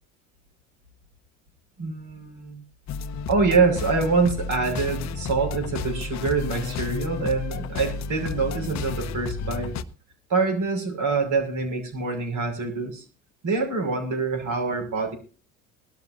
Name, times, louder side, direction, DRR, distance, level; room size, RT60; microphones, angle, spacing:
voice 1, 1.8-2.6 3.3-9.7 10.3-13.0 13.4-15.2, right 4 dB, 50° right, 3 dB, 5.7 m, -25 dB
sound 1, 2.9-9.8, left 5 dB, 45° left, 0.9 m, -32 dB
21.5 x 12.0 x 2.6 m, 0.35 s
hypercardioid pair, 70°, 40 cm